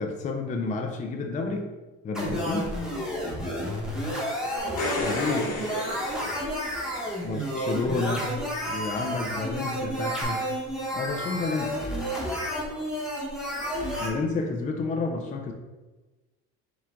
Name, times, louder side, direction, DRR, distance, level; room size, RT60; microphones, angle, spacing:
voice 1, 0.0-1.7 2.0-2.7 5.0-5.4 7.2-8.3 8.7-10.4 10.9-11.8 14.0-15.5, left 3 dB, 25° left, 3 dB, 0.4 m, -30 dB
sound 1, 2.1-14.1, equal, ahead, 1.1 m, -31 dB
voice 2, 4.4-6.0 12.6-12.9, right 5 dB, 55° right, 4 dB, 0.7 m, -41 dB
sound 2, 4.6-7.1 10.2-10.3, left 2 dB, 60° left, 1.1 m, -32 dB
4.6 x 2.4 x 3.6 m, 1.2 s
supercardioid pair, 100°, 30 cm